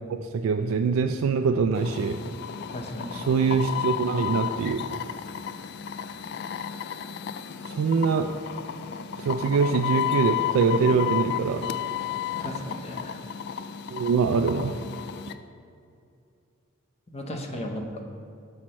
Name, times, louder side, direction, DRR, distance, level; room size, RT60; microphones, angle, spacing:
voice 1, 0.1-2.2 3.1-4.8 7.6-8.3 9.2-11.7 13.9-14.8, right 5 dB, 80° right, 6 dB, 0.3 m, -24 dB
sound 1, 1.7-15.3, left 10 dB, 55° left, 0.3 m, -32 dB
voice 2, 2.7-3.2 12.3-13.2 17.1-18.0, equal, 30° left, 2 dB, 0.7 m, -35 dB
6.0 x 4.3 x 6.2 m, 2.4 s
head